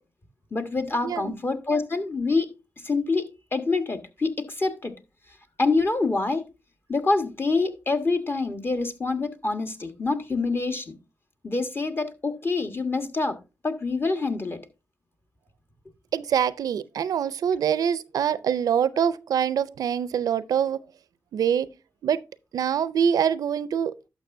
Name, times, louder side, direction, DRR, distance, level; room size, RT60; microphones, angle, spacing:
voice 1, 0.5-2.5 2.8-4.9 5.6-6.5 6.9-11.0 11.4-13.4 13.6-14.6, left 3 dB, 40° left, 1.4 m, -26 dB
voice 2, 1.0-1.3 16.1-20.8 21.3-21.7 22.0-22.2 22.5-23.9, right 8 dB, 90° right, 0.4 m, -24 dB
11.5 x 6.2 x 2.6 m
cardioid pair, 60°, 6 cm